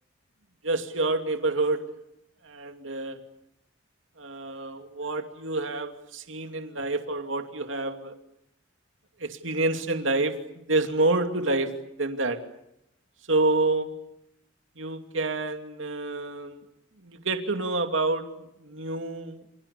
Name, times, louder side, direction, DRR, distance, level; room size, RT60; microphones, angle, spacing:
voice 1, 0.6-1.8 2.4-3.2 4.2-8.2 9.2-11.7 12.0-12.4 13.3-13.9 14.8-16.6 17.0-18.3 18.6-19.4, right 2 dB, 70° right, 6 dB, 2.7 m, -28 dB
28.5 x 28.0 x 7.1 m, 0.82 s
head